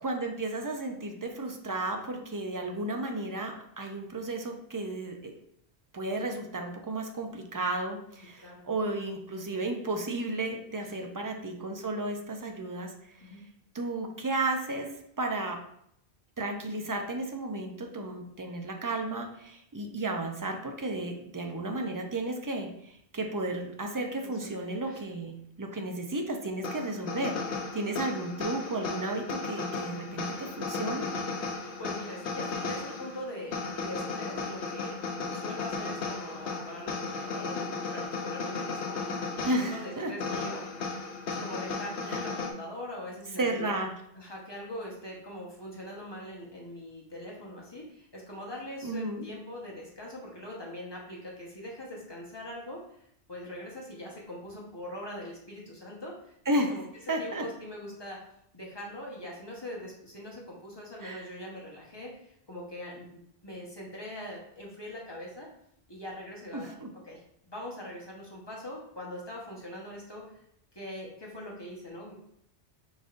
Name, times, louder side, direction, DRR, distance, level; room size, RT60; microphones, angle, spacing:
voice 1, 0.0-5.3 5.9-12.9 13.7-14.9 15.2-15.6 16.4-31.1 39.4-40.1 42.1-42.2 43.4-43.9 48.8-49.3 56.5-56.7 57.1-57.4 61.0-61.3 66.5-66.9, right 2 dB, 30° right, 3 dB, 0.3 m, -33 dB
voice 2, 24.2-25.0 31.8-35.0 35.3-40.9 41.3-43.7 44.1-53.0 53.3-56.8 57.2-58.2 58.5-65.5 65.9-66.7 67.0-67.2 67.5-70.2 70.7-72.1, left 1 dB, 25° left, -4 dB, 1.1 m, -42 dB
sound 1, 26.6-42.5, left 4 dB, 85° left, 1.0 m, -35 dB
5.0 x 4.0 x 2.5 m, 0.72 s
omnidirectional pair, 1.1 m